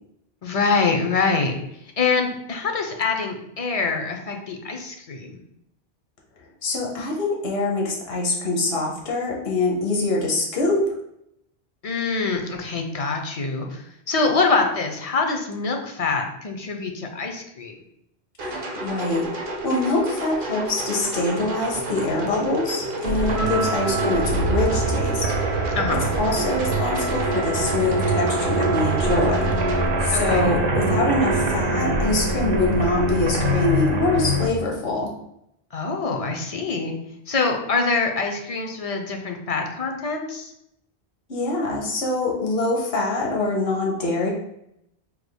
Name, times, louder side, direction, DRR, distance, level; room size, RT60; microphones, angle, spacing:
voice 1, 0.4-1.5 2.0-5.4 11.8-17.8 25.7-26.1 30.1-30.5 35.7-36.9 37.3-40.5, left 4 dB, 45° left, 3 dB, 0.5 m, -25 dB
voice 2, 6.6-10.8 18.4-19.3 19.6-25.6 26.2-29.5 30.0-35.1 41.3-44.3, left 2 dB, 70° left, -2 dB, 1.1 m, -24 dB
sound 1, 18.4-29.9, right 2 dB, 60° right, 0.8 m, -31 dB
sound 2, 23.1-34.5, right 1 dB, 90° right, 0.9 m, -24 dB
Wind instrument woodwind instrument, 23.3-30.1, right 2 dB, 35° right, 1.2 m, -32 dB
4.7 x 3.4 x 2.2 m, 0.78 s
omnidirectional pair, 1.1 m